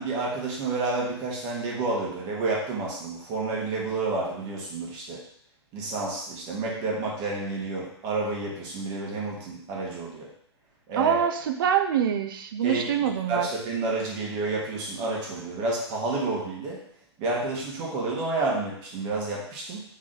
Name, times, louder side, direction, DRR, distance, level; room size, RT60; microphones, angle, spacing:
voice 1, 0.0-5.2 5.7-10.3 10.9-11.2 12.6-12.9 13.3-16.8 17.2-19.8, right 3 dB, 30° right, -3 dB, 1.3 m, -30 dB
voice 2, 10.9-13.5, right 9 dB, 50° right, 7 dB, 0.5 m, -25 dB
3.7 x 3.2 x 3.9 m, 0.67 s
figure-of-eight pair, 115°, 14 cm